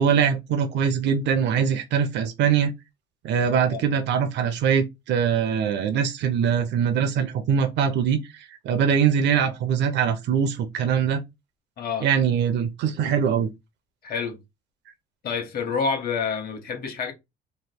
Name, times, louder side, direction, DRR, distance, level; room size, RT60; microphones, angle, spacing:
voice 1, 0.0-2.7 3.2-11.2 12.0-13.5, right 7 dB, 70° right, 0.6 m, -22 dB
voice 2, 11.8-12.1 14.0-14.4 15.2-17.1, left 5 dB, 55° left, 1.1 m, -28 dB
3.0 x 2.4 x 3.5 m
cardioid pair, 150°, 19 cm